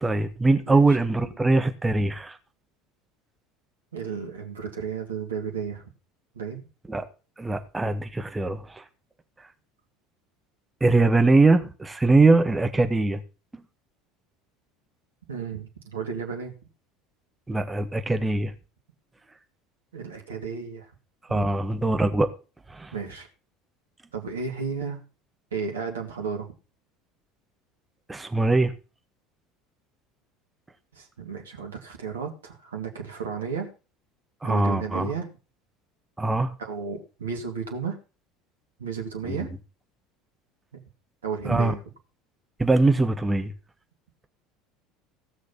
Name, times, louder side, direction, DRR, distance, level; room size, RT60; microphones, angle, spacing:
voice 1, 0.0-2.4 6.9-7.0 7.4-8.8 10.8-13.2 17.5-18.5 21.3-22.3 22.7-22.9 28.1-28.7 34.4-35.1 36.2-36.5 39.3-39.4 41.4-41.7 42.6-43.5, right 2 dB, 15° right, 1.7 m, -22 dB
voice 2, 0.7-1.0 3.9-5.8 6.3-6.6 15.3-16.6 19.9-20.9 21.3-21.6 22.9-23.3 24.1-25.0 25.5-26.5 30.9-33.7 34.4-35.3 36.6-38.0 38.8-39.5 40.7-40.8 41.2-41.8, right 5 dB, 75° right, 2.5 m, -33 dB
16.5 x 6.4 x 5.7 m
figure-of-eight pair, 70°, 0 cm